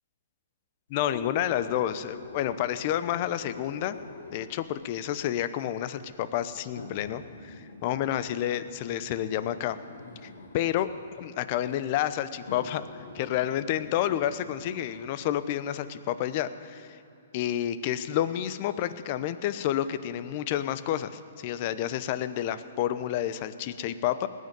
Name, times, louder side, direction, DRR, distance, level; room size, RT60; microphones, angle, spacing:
voice 1, 0.9-4.0 4.3-9.8 10.2-10.9 11.2-12.8 13.1-17.0 17.3-24.3, left 11 dB, 45° left, 13 dB, 0.7 m, -30 dB
sound 1, 1.0-4.7 5.6-5.7 6.8-10.7 11.7-11.8 12.4-15.1 15.5-15.6, left 3 dB, 90° left, 1.9 m, -45 dB
19.5 x 6.6 x 9.0 m, 2.8 s
hypercardioid pair, 135°, 0 cm